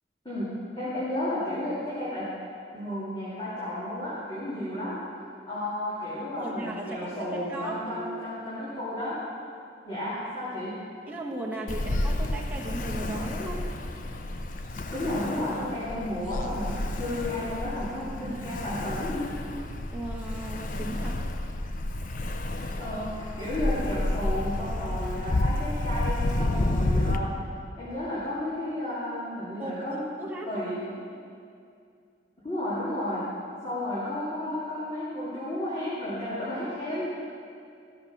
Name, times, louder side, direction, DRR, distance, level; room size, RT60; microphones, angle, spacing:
voice 1, 0.2-2.3 2.7-5.0 5.5-9.2 9.8-10.8 14.9-19.3 22.6-27.3 27.8-30.0 30.5-30.8 32.4-33.2 33.6-37.1, left 1 dB, 25° left, -12 dB, 2.6 m, -32 dB
voice 2, 6.4-8.1 11.1-13.6 19.9-21.2 29.6-30.7, right 1 dB, 10° right, -4 dB, 1.3 m, -36 dB
Ocean, 11.7-27.2, left 1 dB, 45° left, 0.6 m, -30 dB
13.5 x 6.7 x 5.7 m, 2.4 s
head